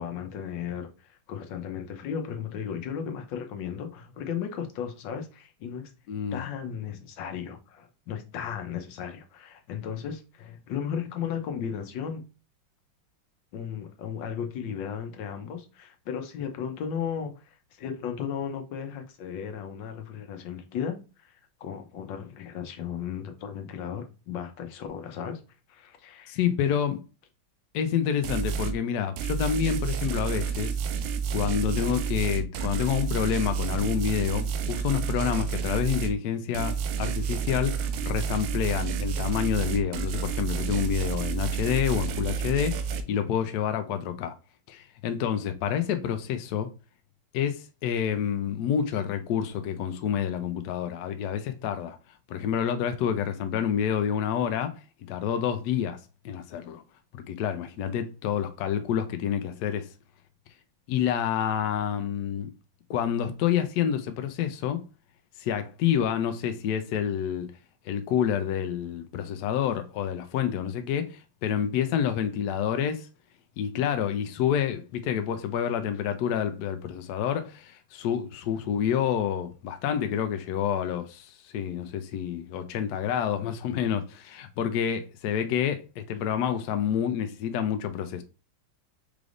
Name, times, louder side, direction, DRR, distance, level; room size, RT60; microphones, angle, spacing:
voice 1, 0.0-5.9 6.3-12.2 13.5-25.4 25.7-26.4, left 8 dB, 70° left, 1.3 m, -35 dB
voice 2, 6.1-6.4 26.3-27.0 27.7-30.8 31.3-44.3 44.7-46.7 47.3-52.0 52.3-56.0 56.2-56.8 57.1-59.9 60.9-62.5 62.9-64.8 65.4-67.5 67.9-73.1 73.6-88.2, left 9 dB, 85° left, 0.8 m, -28 dB
sound 1, 28.2-28.8 29.2-36.2 36.5-43.0, right 6 dB, 85° right, 1.5 m, -30 dB
4.9 x 3.3 x 2.4 m
omnidirectional pair, 2.3 m